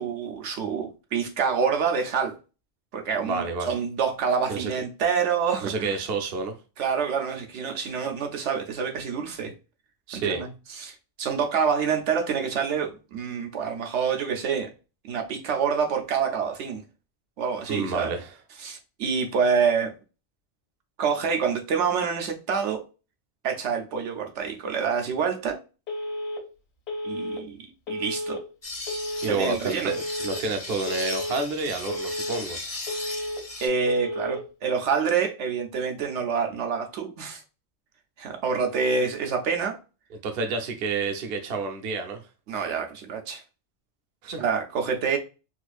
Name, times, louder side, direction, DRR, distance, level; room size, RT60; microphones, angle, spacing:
voice 1, 0.0-2.4 2.9-6.0 6.8-9.5 10.1-10.5 10.8-14.7 15.1-16.8 17.4-18.1 18.6-19.9 21.0-22.8 23.4-25.6 27.0-27.6 27.9-28.4 29.3-29.9 33.6-37.4 38.2-39.8 42.5-43.4 44.4-45.2, right 6 dB, 85° right, 1.0 m, -27 dB
voice 2, 3.2-3.7 4.5-4.7 5.6-6.5 10.1-10.4 17.7-18.3 29.2-32.6 40.2-42.2 44.2-44.4, right 4 dB, 65° right, 0.9 m, -29 dB
Telephone, 25.9-26.4 26.9-27.4 27.9-28.4 28.9-29.4 29.9-30.4 30.9-31.4 31.9-32.4 32.9-33.4 33.9-34.4, left 1 dB, 65° left, 1.5 m, -32 dB
sound 1, 28.6-33.7, left 2 dB, 35° left, 0.9 m, -37 dB
4.3 x 2.5 x 2.4 m
omnidirectional pair, 1.2 m